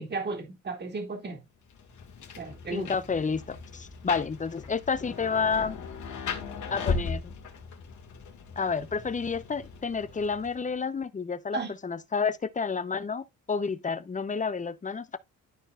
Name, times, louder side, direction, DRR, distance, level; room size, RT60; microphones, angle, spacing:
voice 1, 0.0-1.5 2.4-3.0 11.5-11.7, right 3 dB, 35° right, 2.3 m, -34 dB
Rain, 1.7-10.7, left 4 dB, 75° left, 2.2 m, -38 dB
voice 2, 2.7-5.8 6.7-7.2 8.6-15.2, left 5 dB, 25° left, 0.7 m, -30 dB
13.0 x 4.5 x 2.4 m
cardioid pair, 90°, 30 cm